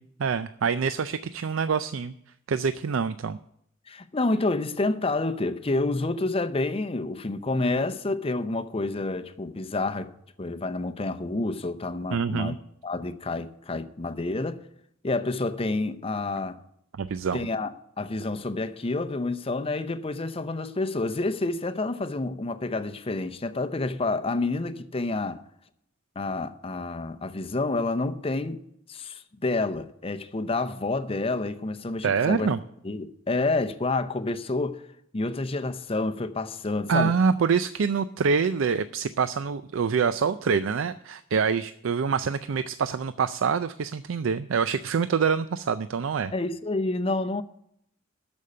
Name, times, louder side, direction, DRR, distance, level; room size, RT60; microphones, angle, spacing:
voice 1, 0.2-2.1 2.5-3.4 12.1-12.6 17.0-17.5 32.0-32.6 36.9-46.3, right 6 dB, 75° right, 0.4 m, -25 dB
voice 2, 3.9-10.1 10.4-12.5 12.8-14.6 15.0-16.6 17.3-25.4 26.2-28.6 28.9-32.5 32.8-34.8 35.1-37.1 46.3-47.4, left 2 dB, 30° left, 0.7 m, -29 dB
13.0 x 5.3 x 8.6 m
head